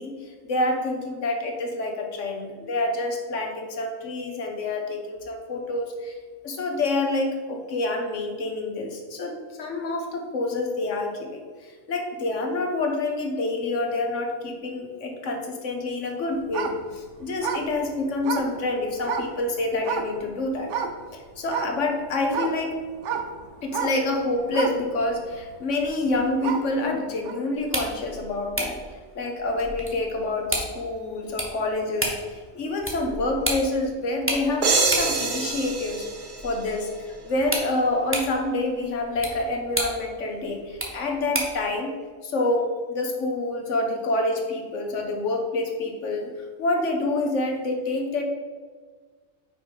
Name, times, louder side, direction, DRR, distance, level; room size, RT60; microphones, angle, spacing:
voice 1, 0.0-6.2 6.4-20.8 21.1-22.8 23.6-28.8 29.1-36.1 36.4-41.9 42.2-48.2, left 2 dB, 75° left, 3 dB, 1.3 m, -27 dB
sound 1, 16.4-19.4 19.8-20.3 20.6-21.0 21.5-26.8 27.2-27.3, right 6 dB, 75° right, 1.0 m, -31 dB
sound 2, 27.5-41.7, right 1 dB, 10° right, 1.0 m, -34 dB
sound 3, 34.6-37.3, right 4 dB, 45° right, 1.0 m, -26 dB
5.7 x 4.8 x 5.3 m, 1.5 s
omnidirectional pair, 1.3 m